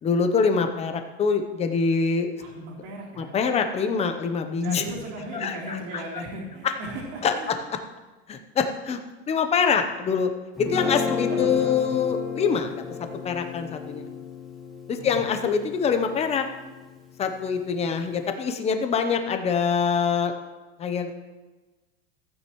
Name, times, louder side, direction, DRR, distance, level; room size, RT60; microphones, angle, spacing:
voice 1, 0.0-2.3 3.2-4.8 5.3-5.5 7.2-7.3 8.3-9.0 9.3-10.3 10.6-12.8 13.2-14.1 14.9-16.4 17.2-20.3 20.8-21.1, left 6 dB, 20° left, 7 dB, 0.8 m, -24 dB
voice 2, 2.4-3.4 4.6-7.7 11.0-12.1 14.9-15.3, right 2 dB, 65° right, -4 dB, 3.6 m, -37 dB
Guitar, 10.6-16.9, left 5 dB, ahead, 1.7 m, -32 dB
15.5 x 9.0 x 3.1 m, 1.2 s
supercardioid pair, 155°, 33 cm